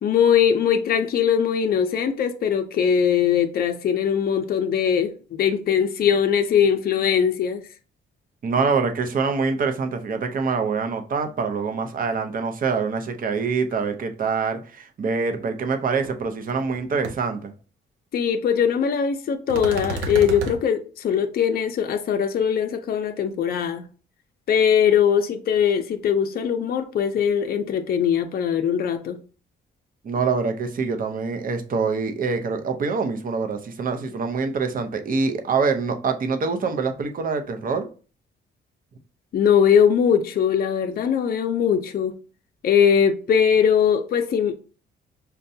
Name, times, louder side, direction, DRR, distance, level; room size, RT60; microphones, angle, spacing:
voice 1, 0.0-7.6 18.1-23.8 24.5-29.2 39.3-42.1 42.6-44.5, left 8 dB, 50° left, 0.5 m, -21 dB
voice 2, 8.4-17.5 30.0-37.9, right 5 dB, 45° right, 0.7 m, -25 dB
sound 1, 16.0-16.1 16.5-16.8 17.0-17.1 19.5-20.6, right 3 dB, 85° right, 0.7 m, -30 dB
5.4 x 2.2 x 2.7 m
cardioid pair, 90°, 20 cm